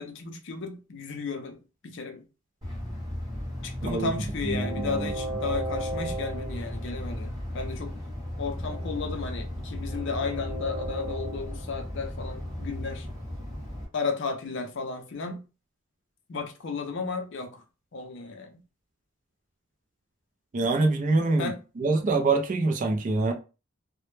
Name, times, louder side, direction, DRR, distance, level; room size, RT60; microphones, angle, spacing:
voice 1, 0.0-1.6 1.8-2.2 3.6-8.0 8.4-13.1 13.9-15.4 16.3-17.6 17.9-18.6 21.4-21.6, left 4 dB, 55° left, 0.4 m, -34 dB
Train, 2.6-13.8, equal, 15° right, 1.0 m, -34 dB
voice 2, 4.4-5.1 20.5-23.3, right 3 dB, 35° right, 0.3 m, -25 dB
2.1 x 2.0 x 3.0 m
head